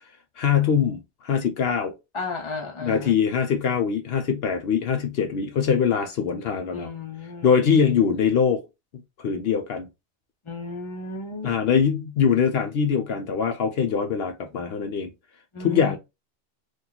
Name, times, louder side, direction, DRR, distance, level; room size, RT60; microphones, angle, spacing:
voice 1, 0.4-1.9 2.8-6.9 7.4-8.6 9.2-9.9 11.4-15.1 15.6-16.0, left 7 dB, 70° left, 0.8 m, -23 dB
voice 2, 2.1-3.1 6.7-7.5 10.4-11.5 15.5-16.0, left 3 dB, 30° left, 0.9 m, -34 dB
2.9 x 2.6 x 3.8 m
omnidirectional pair, 1.1 m